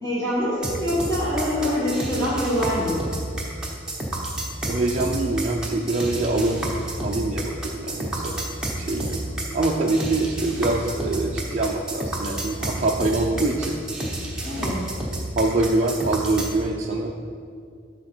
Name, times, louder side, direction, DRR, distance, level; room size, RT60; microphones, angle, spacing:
voice 1, 0.0-3.0 14.4-14.8, equal, 20° left, -10 dB, 1.7 m, -25 dB
sound 1, 0.6-16.5, right 1 dB, 5° right, 1.0 m, -30 dB
voice 2, 4.7-6.6 7.0-8.4 8.8-9.2 9.5-13.8 15.4-17.1, right 2 dB, 35° right, -1 dB, 0.4 m, -24 dB
12.5 x 4.2 x 4.4 m, 2.3 s
head